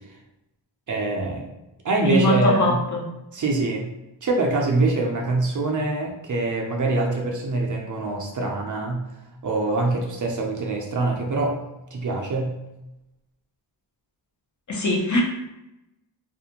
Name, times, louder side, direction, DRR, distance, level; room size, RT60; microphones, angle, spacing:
voice 1, 0.9-1.5 1.8-2.8 3.3-3.9 4.2-9.1 9.4-11.6 11.9-12.5, right 2 dB, 45° right, -1 dB, 0.5 m, -24 dB
voice 2, 2.0-3.1 14.7-15.2, left 1 dB, 40° left, -2 dB, 0.6 m, -21 dB
2.4 x 2.1 x 2.8 m, 0.91 s
wide cardioid pair, 105°, 45 cm